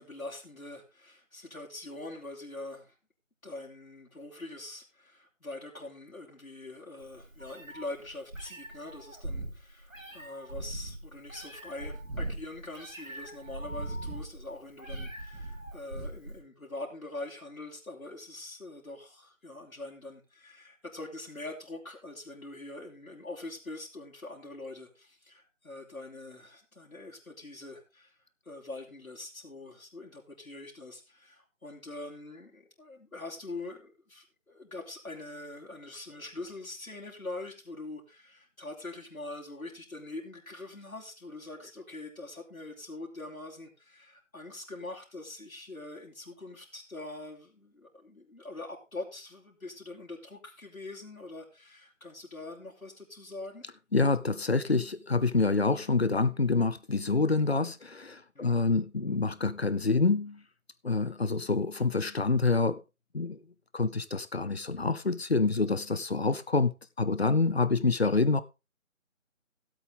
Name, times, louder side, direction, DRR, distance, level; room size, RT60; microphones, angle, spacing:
voice 1, 0.0-3.0 3.4-28.2 28.4-53.6 58.4-58.6, left 2 dB, 90° left, 3.7 m, -43 dB
Meow, 7.0-16.4, right 1 dB, 65° right, 5.8 m, -40 dB
voice 2, 53.9-60.4 60.8-62.8 63.1-63.4 63.7-68.4, left 3 dB, 50° left, 0.9 m, -27 dB
16.5 x 8.0 x 3.4 m
figure-of-eight pair, 170°, 41 cm